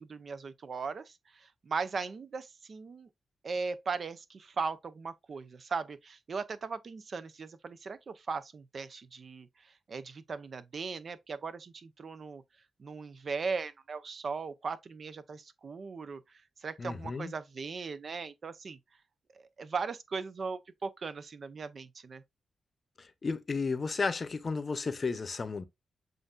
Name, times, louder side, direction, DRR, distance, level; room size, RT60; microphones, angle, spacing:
voice 1, 0.0-3.1 3.4-12.4 12.8-16.2 16.6-18.8 19.3-22.2, right 4 dB, 55° right, 0.5 m, -38 dB
voice 2, 16.8-17.3 23.2-25.6, left 4 dB, 45° left, 0.7 m, -33 dB
7.6 x 2.6 x 2.4 m
cardioid pair, 70°, 0 cm